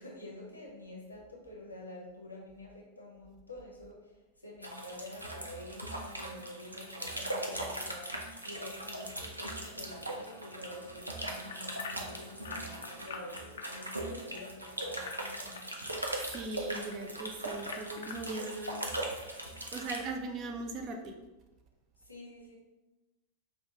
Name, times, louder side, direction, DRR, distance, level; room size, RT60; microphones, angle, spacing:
voice 1, 0.0-15.6 22.0-22.6, left 1 dB, 85° left, -2 dB, 0.9 m, -48 dB
sound 1, 4.6-20.0, right 1 dB, 85° right, 0.5 m, -40 dB
sound 2, 11.5-16.9 17.4-18.8 19.3-19.4 19.9-20.0, left 5 dB, 65° left, 0.4 m, -45 dB
voice 2, 16.3-18.9 19.3-19.4 19.7-21.1, right 3 dB, 35° right, 4 dB, 0.5 m, -39 dB
5.2 x 2.3 x 2.9 m, 1.1 s
figure-of-eight pair, 90°, 0 cm